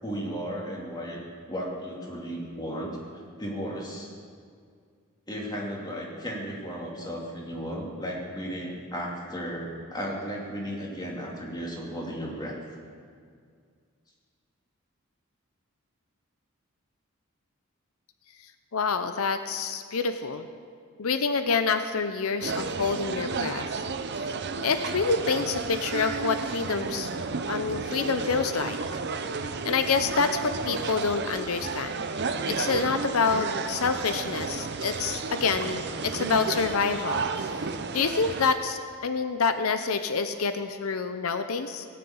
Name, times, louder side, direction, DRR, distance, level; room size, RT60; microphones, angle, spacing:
voice 1, 0.0-1.2 1.5-2.9 3.4-4.1 5.3-12.6, equal, 20° left, -3 dB, 2.6 m, -34 dB
voice 2, 18.7-20.5 21.0-23.8 24.2-24.3 24.6-27.1 27.5-28.8 29.6-32.0 32.4-37.7 37.9-41.9, left 5 dB, 75° left, 9 dB, 0.7 m, -27 dB
sound 1, 22.4-38.6, right 4 dB, 50° right, 0.7 m, -32 dB
18.0 x 6.9 x 8.7 m, 2.1 s
head